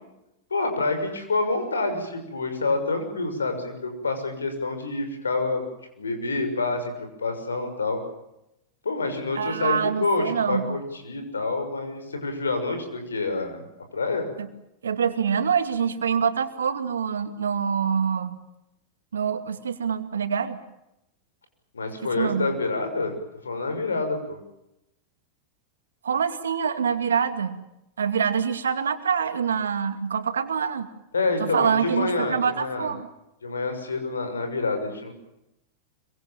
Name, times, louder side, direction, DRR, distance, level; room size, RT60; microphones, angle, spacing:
voice 1, 0.5-5.6 6.0-8.0 8.8-13.6 13.9-14.3 21.7-23.2 23.4-24.4 31.1-32.9 33.4-35.1, left 3 dB, 80° left, 7 dB, 6.3 m, -27 dB
voice 2, 9.4-10.7 14.4-14.5 14.8-18.4 19.1-20.6 22.0-22.5 26.0-27.6 28.0-30.9 31.4-33.1, right 7 dB, 75° right, 9 dB, 2.3 m, -25 dB
26.0 x 24.5 x 7.3 m, 0.87 s
figure-of-eight pair, 95°, 0 cm